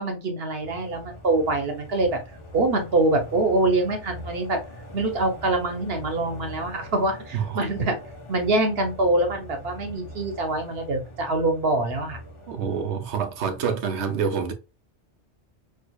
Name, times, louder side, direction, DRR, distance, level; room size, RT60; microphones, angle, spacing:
voice 1, 0.0-2.2 2.5-4.6 4.9-7.9 8.3-12.2, right 2 dB, 65° right, 1.1 m, -24 dB
sound 1, 0.6-13.7, equal, 30° left, 0.7 m, -42 dB
voice 2, 12.5-14.5, right 6 dB, 85° right, 0.9 m, -27 dB
4.6 x 2.4 x 2.2 m
omnidirectional pair, 1.1 m